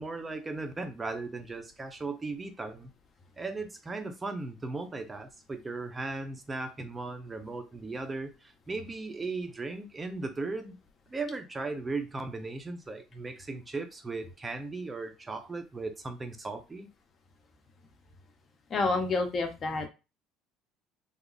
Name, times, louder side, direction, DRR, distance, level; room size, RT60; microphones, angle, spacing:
voice 1, 0.0-2.9 3.4-10.8 11.1-16.9, right 3 dB, 20° right, 0.7 m, -37 dB
voice 2, 18.7-19.9, left 3 dB, 35° left, 1.0 m, -28 dB
3.4 x 2.0 x 3.9 m
cardioid pair, 110°, 0 cm